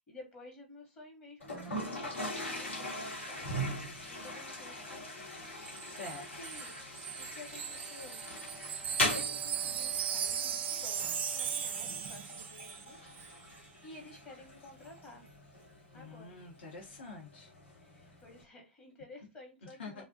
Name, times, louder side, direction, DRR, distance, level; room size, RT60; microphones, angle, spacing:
voice 1, 0.0-3.6 4.1-5.3 6.1-6.7 7.2-8.2 9.0-13.0 13.8-15.2 15.9-16.4 17.8-20.0, left 2 dB, 25° left, 0 dB, 0.8 m, -52 dB
Toilet flush, 1.4-18.4, left 1 dB, 85° left, 1.0 m, -41 dB
Wind chime, 5.7-12.9 13.1-13.3, right 8 dB, 65° right, 0.3 m, -38 dB
voice 2, 5.9-6.2 15.9-17.5 19.8-20.0, left 3 dB, 65° left, -1 dB, 0.7 m, -46 dB
sound 1, 7.4-12.2, left 6 dB, ahead, 0.4 m, -53 dB
2.5 x 2.1 x 2.5 m, 0.27 s
figure-of-eight pair, 105°, 6 cm